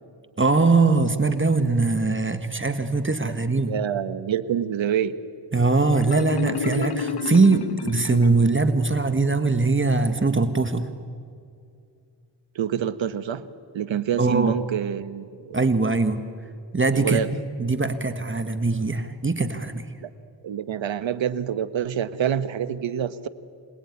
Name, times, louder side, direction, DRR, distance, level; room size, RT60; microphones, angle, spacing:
voice 1, 0.4-3.8 5.5-10.9 14.2-14.6 15.5-16.2 16.7-19.8, right 3 dB, 25° right, 9 dB, 1.5 m, -21 dB
voice 2, 3.7-5.2 12.5-13.4 13.7-15.6 16.9-17.3 20.0-20.1 20.4-23.3, right 9 dB, 80° right, 12 dB, 1.2 m, -26 dB
Marimba xylophone, 5.9-8.7, left 6 dB, 55° left, 1.6 m, -30 dB
26.0 x 19.5 x 9.6 m, 2.4 s
cardioid pair, 75°, 45 cm